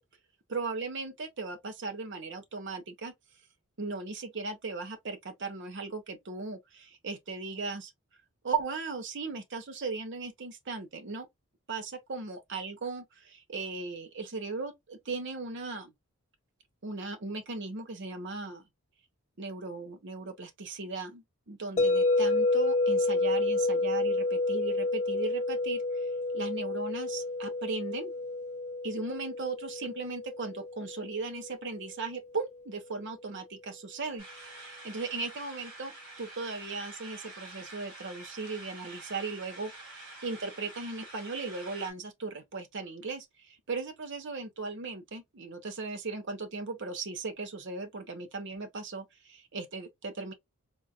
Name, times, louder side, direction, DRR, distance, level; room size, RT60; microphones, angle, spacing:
voice 1, 0.5-3.1 3.8-7.9 8.4-11.3 11.7-15.9 16.8-18.6 19.4-28.1 28.8-50.3, right 4 dB, 55° right, 0.7 m, -37 dB
sound 1, 21.8-31.8, left 2 dB, 30° left, 0.3 m, -29 dB
sound 2, 34.2-41.9, right 2 dB, 85° right, 2.1 m, -47 dB
3.7 x 2.6 x 2.4 m
head